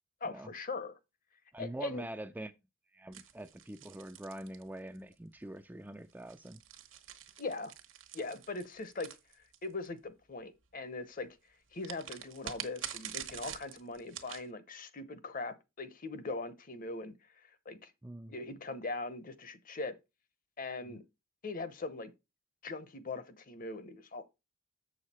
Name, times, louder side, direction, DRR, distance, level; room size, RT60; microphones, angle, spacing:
voice 1, 0.2-0.9 1.6-2.0 7.4-7.7 8.1-9.1 9.6-11.3 11.7-17.1 17.7-17.9 18.3-19.9 20.6-21.0 21.4-22.1 22.6-24.3, left 3 dB, 40° left, 0.8 m, -40 dB
voice 2, 1.5-2.5 2.9-6.6 18.0-18.3 20.9-21.0, right 1 dB, 10° right, 0.4 m, -44 dB
sound 1, 3.1-5.1 6.1-9.9 11.8-14.5, right 10 dB, 65° right, 1.1 m, -46 dB
7.4 x 6.4 x 4.3 m
head